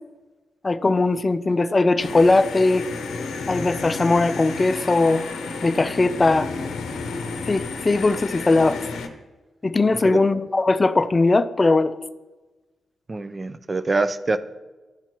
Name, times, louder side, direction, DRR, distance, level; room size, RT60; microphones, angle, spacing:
voice 1, 0.6-2.9 3.5-5.2 5.6-6.5 7.5-8.8 9.6-12.0, left 3 dB, 30° left, 13 dB, 0.4 m, -19 dB
sound 1, 2.0-9.1, left 4 dB, 90° left, 0.7 m, -32 dB
voice 2, 13.1-14.4, right 3 dB, 35° right, 12 dB, 0.5 m, -24 dB
12.0 x 4.4 x 3.0 m, 1.2 s
cardioid pair, 70°, 0 cm